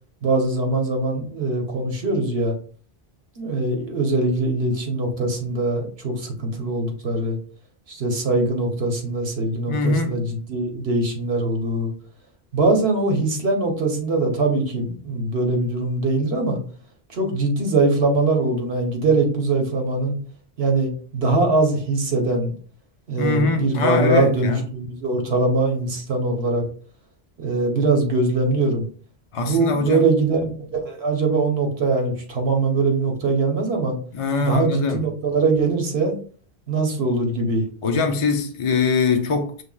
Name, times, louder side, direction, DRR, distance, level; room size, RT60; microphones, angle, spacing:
voice 1, 0.2-2.5 3.4-7.4 7.9-11.9 12.5-16.6 17.1-20.1 20.6-22.5 23.1-26.6 27.4-28.8 29.4-34.0 34.4-36.1 36.7-37.6, right 3 dB, 80° right, 1.3 m, -22 dB
voice 2, 9.7-10.2 23.2-24.6 29.3-30.0 34.1-35.0 37.8-39.6, left 4 dB, 40° left, 0.5 m, -22 dB
5.8 x 3.3 x 2.3 m
omnidirectional pair, 1.0 m